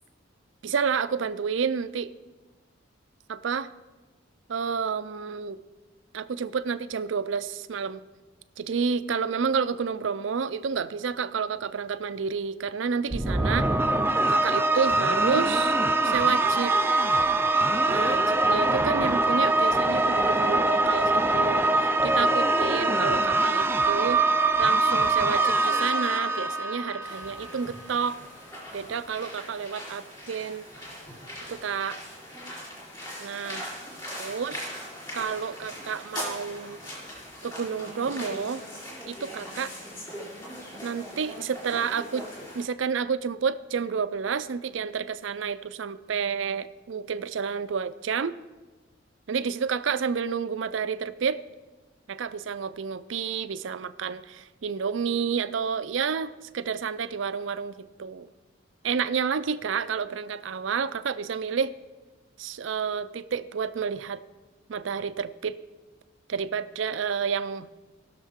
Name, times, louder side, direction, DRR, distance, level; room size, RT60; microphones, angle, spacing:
voice 1, 0.6-2.1 3.3-3.7 4.5-5.6 6.1-8.0 8.6-13.7 14.3-15.8 16.0-16.8 17.9-24.2 24.6-28.2 28.7-30.7 31.5-32.0 33.2-33.7 34.2-34.7 35.1-36.8 37.4-38.6 39.1-39.7 40.8-42.2 42.5-48.3 49.3-51.4 52.1-58.3 58.8-61.7 62.4-64.2 64.7-65.6 66.3-67.7, right 6 dB, 70° right, 14 dB, 0.5 m, -30 dB
sound 1, 13.1-27.5, right 2 dB, 10° right, 0.4 m, -23 dB
sound 2, 27.0-42.6, equal, 20° left, 3.9 m, -40 dB
19.5 x 6.5 x 3.6 m, 1.2 s
head